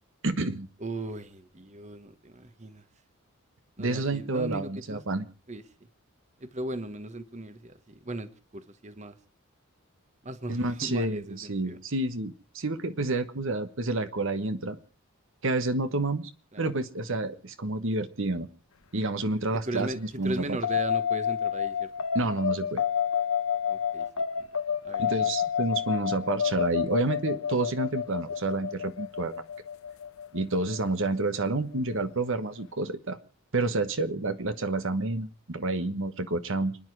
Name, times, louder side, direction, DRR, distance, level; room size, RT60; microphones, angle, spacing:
voice 1, 0.2-0.7 3.8-5.2 10.5-14.8 15.4-16.3 16.6-18.5 18.9-20.6 22.1-22.8 25.0-29.4 30.3-33.2 33.5-36.8, right 2 dB, 65° right, 10 dB, 1.3 m, -29 dB
voice 2, 0.8-2.8 3.8-5.0 5.5-5.6 6.4-9.2 10.2-11.8 16.5-16.7 19.7-20.0 20.2-21.9 23.7-24.2 24.8-25.1, right 1 dB, 35° right, 11 dB, 1.2 m, -37 dB
sound 1, 20.6-31.4, left 8 dB, 70° left, 0.8 m, -29 dB
29.5 x 10.0 x 4.7 m, 0.41 s
head